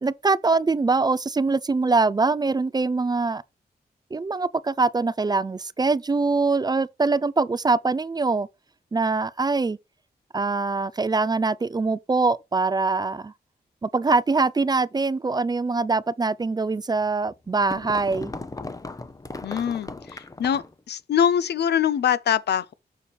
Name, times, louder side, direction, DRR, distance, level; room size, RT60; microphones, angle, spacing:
voice 1, 0.0-3.4 4.1-8.5 8.9-9.8 10.3-13.3 13.8-18.3, right 3 dB, 25° right, 0.3 m, -23 dB
sound 1, 17.0-20.8, left 2 dB, 20° left, 0.7 m, -37 dB
voice 2, 19.4-22.7, left 8 dB, 80° left, 0.5 m, -24 dB
6.9 x 4.2 x 4.6 m
wide cardioid pair, 105°, 17 cm